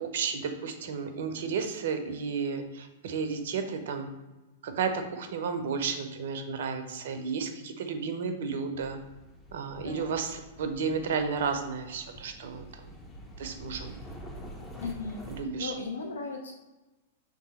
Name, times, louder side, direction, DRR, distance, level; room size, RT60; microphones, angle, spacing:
voice 1, 0.0-4.1 4.6-9.0 9.5-13.0 13.4-14.0 15.3-15.7, right 5 dB, 60° right, 7 dB, 0.5 m, -32 dB
sound 1, 8.8-15.4, equal, 10° left, 0.6 m, -46 dB
voice 2, 14.8-15.3 15.6-16.5, left 4 dB, 70° left, 2 dB, 0.4 m, -36 dB
3.5 x 2.8 x 4.1 m, 1.1 s
figure-of-eight pair, 100°, 0 cm